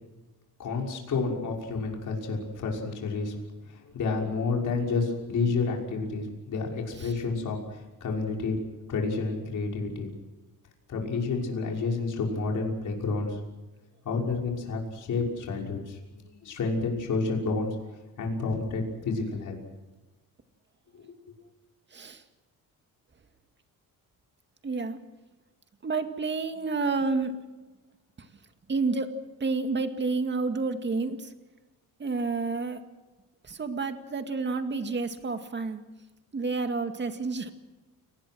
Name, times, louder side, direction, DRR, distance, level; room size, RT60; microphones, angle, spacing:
voice 1, 0.6-3.4 3.7-8.6 8.9-10.1 10.9-13.4 14.0-17.8 18.2-19.6 20.9-21.1, left 4 dB, 55° left, 0 dB, 6.1 m, -30 dB
voice 2, 21.9-22.2 24.6-25.0 25.8-27.4 28.2-28.3 28.7-29.1 29.4-31.3 32.0-32.8 33.4-35.8 36.3-37.5, right 4 dB, 30° right, 7 dB, 2.1 m, -29 dB
29.5 x 19.5 x 6.3 m, 1.2 s
cardioid pair, 125°, 36 cm